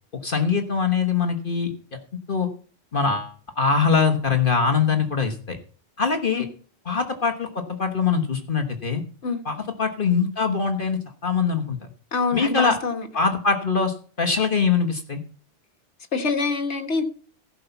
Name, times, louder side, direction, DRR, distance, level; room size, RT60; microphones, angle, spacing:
voice 1, 0.2-2.0 2.3-2.5 2.9-5.6 6.0-6.5 6.8-9.0 9.4-11.8 12.3-12.8 13.1-15.2, left 5 dB, 50° left, 1.4 m, -23 dB
voice 2, 12.1-13.0 16.1-17.0, left 4 dB, 70° left, 1.8 m, -25 dB
15.5 x 5.7 x 7.0 m
omnidirectional pair, 1.2 m